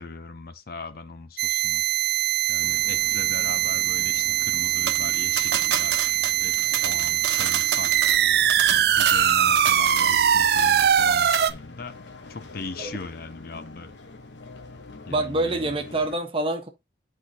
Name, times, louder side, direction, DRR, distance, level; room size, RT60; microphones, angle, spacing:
voice 1, 0.0-1.9 2.5-7.9 9.0-12.0 12.3-13.9 15.1-15.7, left 3 dB, 55° left, 0.7 m, -39 dB
sound 1, 1.4-11.5, right 10 dB, 60° right, 0.4 m, -22 dB
sound 2, 2.6-16.2, left 3 dB, 85° left, 1.0 m, -44 dB
sound 3, 4.9-10.3 10.6-11.1 11.3-11.5, right 8 dB, 90° right, 1.0 m, -30 dB
voice 2, 15.1-16.7, right 2 dB, 30° right, 1.3 m, -26 dB
10.5 x 4.4 x 2.9 m
head